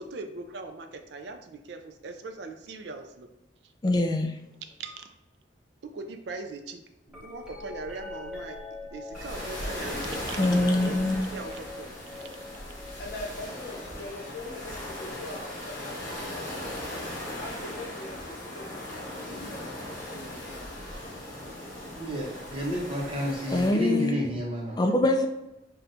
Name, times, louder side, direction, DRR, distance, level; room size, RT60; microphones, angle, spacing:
voice 1, 0.0-3.3 4.6-5.1 5.8-6.8 7.2-8.6 8.9-12.0, right 3 dB, 70° right, 7 dB, 0.4 m, -40 dB
voice 2, 3.8-4.4 10.4-11.3 23.5-24.2 24.8-25.3, left 2 dB, 20° left, 5 dB, 0.3 m, -24 dB
sound 1, 7.1-17.2 18.1-18.5 19.3-20.3 22.1-22.2, left 2 dB, 5° right, 0.9 m, -45 dB
sound 2, 9.1-23.7, left 1 dB, 50° left, 1.2 m, -38 dB
voice 3, 13.0-16.6 17.4-20.6, left 2 dB, 65° left, -4 dB, 0.8 m, -42 dB
voice 4, 21.9-24.8, equal, 30° right, -2 dB, 0.8 m, -31 dB
5.5 x 2.2 x 2.6 m, 0.91 s
head